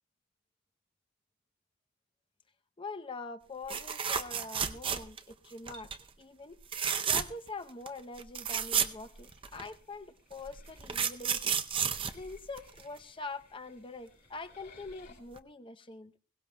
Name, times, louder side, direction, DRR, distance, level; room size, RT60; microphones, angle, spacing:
voice 1, 2.8-5.9 6.2-6.6 7.1-11.6 12.1-16.1, left 3 dB, 25° left, 0.7 m, -44 dB
sound 1, 3.7-5.3 5.7-6.0 6.6-7.5 7.9-8.0 8.2-9.7 10.4-13.0 14.9-15.1 15.4-15.5, right 7 dB, 25° right, 0.6 m, -32 dB
sound 2, 8.4-15.2, left 4 dB, 55° left, 4.2 m, -62 dB
21.5 x 17.5 x 2.2 m
head